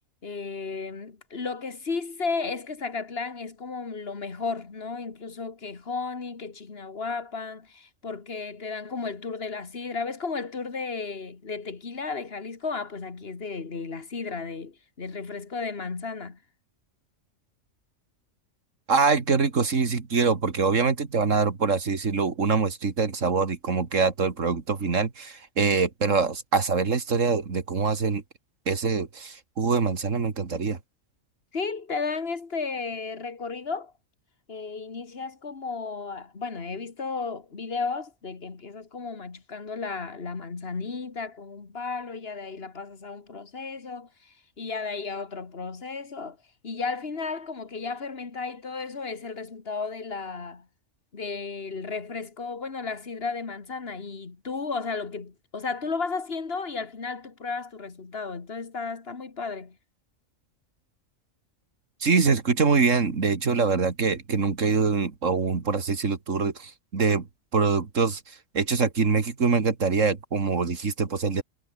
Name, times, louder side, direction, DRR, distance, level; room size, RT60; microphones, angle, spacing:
voice 1, 0.2-16.4 31.5-33.9 34.5-46.4 46.6-50.7 51.1-59.8, left 4 dB, 45° left, 2.2 m, -34 dB
voice 2, 18.9-28.2 28.7-30.8 62.0-67.3 67.5-68.2 68.5-71.4, right 4 dB, 70° right, 2.5 m, -24 dB
omnidirectional pair, 1.4 m